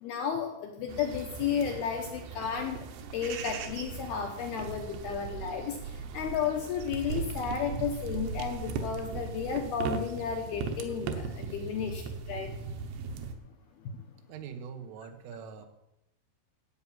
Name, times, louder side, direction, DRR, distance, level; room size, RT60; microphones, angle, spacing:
voice 1, 0.0-2.8 3.1-5.8 6.1-12.5, left 7 dB, 75° left, 3 dB, 2.4 m, -33 dB
sound 1, 0.9-13.4, right 5 dB, 70° right, 2.9 m, -38 dB
voice 2, 14.3-15.7, right 7 dB, 85° right, 7 dB, 3.8 m, -43 dB
15.5 x 8.6 x 5.7 m, 0.88 s
omnidirectional pair, 5.7 m